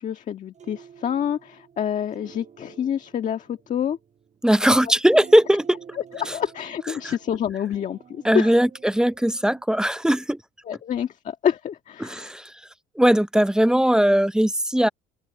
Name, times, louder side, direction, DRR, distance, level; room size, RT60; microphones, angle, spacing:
voice 1, 0.0-4.0 4.8-4.9 6.1-8.5 10.6-12.3, left 9 dB, 45° left, 1.6 m, -27 dB
sound 1, 0.5-9.6, right 7 dB, 45° right, 5.5 m, -48 dB
voice 2, 4.4-5.8 7.0-7.1 8.2-10.4 12.0-12.5 13.0-14.9, equal, 5° right, 0.5 m, -19 dB
open air
cardioid pair, 110°, 17 cm